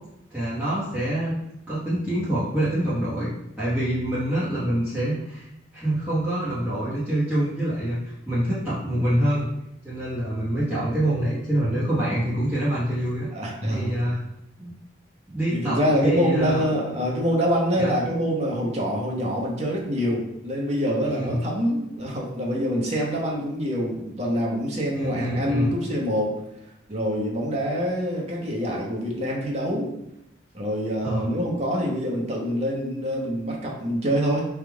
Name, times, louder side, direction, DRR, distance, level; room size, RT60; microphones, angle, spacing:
voice 1, 0.3-1.4 1.7-5.5 5.7-9.5 9.8-13.3 13.7-14.2 14.6-14.7 15.3-16.6 17.7-18.2 21.0-21.4 24.9-25.7 31.0-31.3, right 1 dB, 10° right, -12 dB, 1.0 m, -26 dB
voice 2, 13.3-13.9 15.5-26.4 26.9-29.9 30.5-34.5, equal, 35° right, -2 dB, 0.9 m, -25 dB
3.5 x 2.4 x 4.5 m, 0.81 s
head